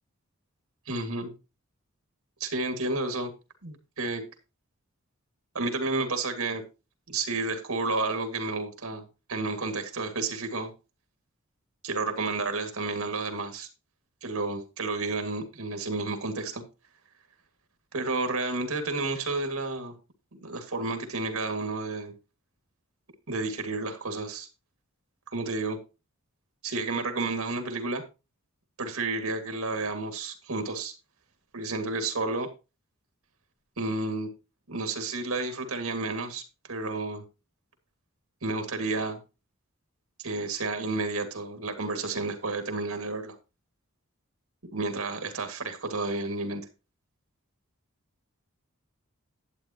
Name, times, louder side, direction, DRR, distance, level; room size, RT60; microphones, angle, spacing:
voice 1, 0.9-1.3 2.4-3.3 3.6-4.2 5.5-6.6 7.1-9.0 9.3-10.7 11.8-13.7 14.2-16.6 17.9-19.9 20.3-22.1 23.3-24.5 25.3-25.8 26.6-28.0 28.8-30.9 31.5-32.5 33.8-34.3 34.7-36.4 36.7-37.2 38.4-39.2 40.2-43.4 44.7-46.6, right 3 dB, 85° right, 6 dB, 2.1 m, -31 dB
11.5 x 8.7 x 2.9 m, 0.29 s
head